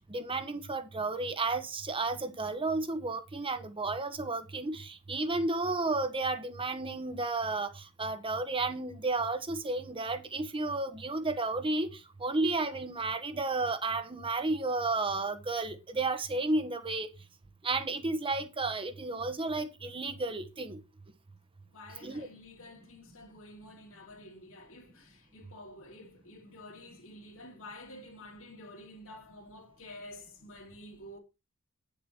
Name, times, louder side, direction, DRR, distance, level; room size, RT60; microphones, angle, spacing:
voice 1, 0.1-11.9 12.2-17.1 17.6-20.8 22.0-22.3, right 3 dB, 25° right, 1.1 m, -32 dB
voice 2, 21.6-31.2, left 1 dB, 65° left, 2.9 m, -50 dB
9.3 x 7.4 x 4.4 m
head